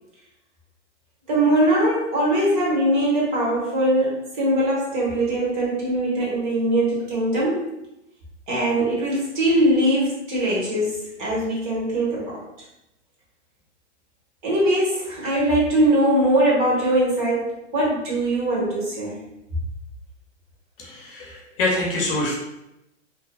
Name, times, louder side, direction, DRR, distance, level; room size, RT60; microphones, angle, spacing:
voice 1, 1.3-7.7 8.5-12.4 14.4-17.5 17.7-19.2, right 1 dB, 40° right, -5 dB, 1.1 m, -21 dB
voice 2, 20.8-22.4, left 2 dB, 50° left, -2 dB, 0.7 m, -25 dB
2.7 x 2.1 x 2.2 m, 0.88 s
hypercardioid pair, 150°, 36 cm